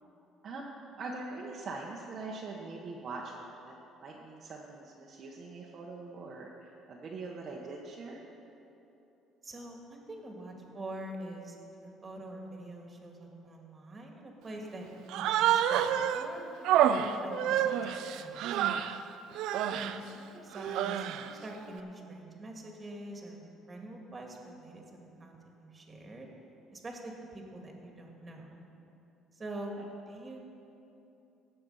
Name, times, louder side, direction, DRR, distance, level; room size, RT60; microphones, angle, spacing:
voice 1, 1.0-8.2 29.8-29.9, right 3 dB, 40° right, -3 dB, 1.1 m, -43 dB
voice 2, 9.4-14.9 15.1-19.1 19.7-24.8 25.2-26.3 26.7-28.6 29.3-29.7 30.1-30.5, right 1 dB, 25° right, 1 dB, 2.0 m, -45 dB
Human voice, 15.1-16.3 16.6-19.0 19.3-20.0 20.5-21.3, right 10 dB, 75° right, 0.5 m, -28 dB
17.5 x 6.9 x 5.5 m, 2.9 s
cardioid pair, 120°, 0 cm